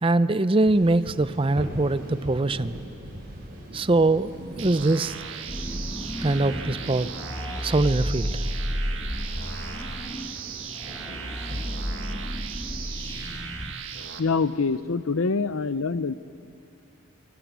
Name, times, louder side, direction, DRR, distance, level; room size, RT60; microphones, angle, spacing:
voice 1, 0.0-2.7 3.7-5.2 6.2-7.1 7.6-8.5, right 2 dB, 25° right, 13 dB, 0.5 m, -23 dB
sound 1, 0.6-13.4, equal, 45° right, 7.0 m, -41 dB
sound 2, 4.6-14.2, right 7 dB, 65° right, 1.6 m, -38 dB
sound 3, 5.5-13.7, equal, 15° left, 1.2 m, -33 dB
voice 2, 13.9-16.1, left 4 dB, 85° left, 15 dB, 0.7 m, -25 dB
26.5 x 25.0 x 8.2 m, 2.6 s
head